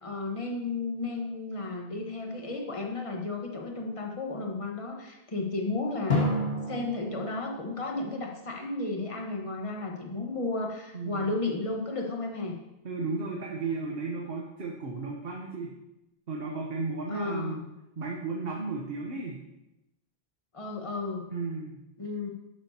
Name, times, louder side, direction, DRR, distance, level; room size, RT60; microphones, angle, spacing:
voice 1, 0.0-6.3 6.7-12.6 17.1-17.6 20.5-21.2 22.0-22.3, left 3 dB, 30° left, 1 dB, 1.4 m, -33 dB
Drum, 6.1-8.8, left 1 dB, 70° left, 2.0 m, -32 dB
voice 2, 10.9-11.3 12.8-15.7 16.3-17.6 18.0-19.4 21.3-21.7, right 3 dB, 70° right, -1 dB, 1.4 m, -34 dB
11.5 x 9.8 x 2.9 m, 0.93 s
omnidirectional pair, 1.0 m